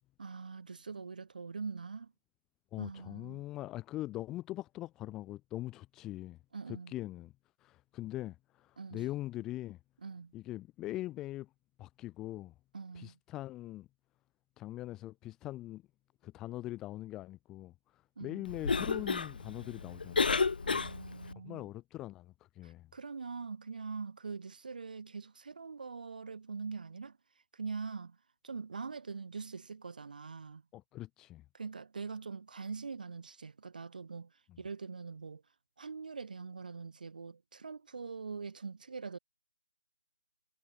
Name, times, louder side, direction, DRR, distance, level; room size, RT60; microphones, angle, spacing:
voice 1, 0.2-2.1 2.8-3.5 6.5-6.9 8.8-9.1 10.0-10.3 12.7-13.2 18.2-18.5 20.6-21.7 22.6-27.2 27.5-28.2 28.4-30.6 31.5-34.3 34.6-35.4 35.8-39.2, right 5 dB, 55° right, 2.5 m, -43 dB
voice 2, 2.7-6.4 6.7-7.3 7.6-9.8 10.3-11.5 11.8-12.5 12.9-13.9 14.6-15.8 16.2-17.7 18.2-20.4 20.7-20.9 21.4-22.9 30.7-31.4, left 16 dB, 10° left, 0.4 m, -42 dB
Cough, 18.4-21.3, left 4 dB, 60° left, 0.5 m, -32 dB
figure-of-eight pair, 165°, 5 cm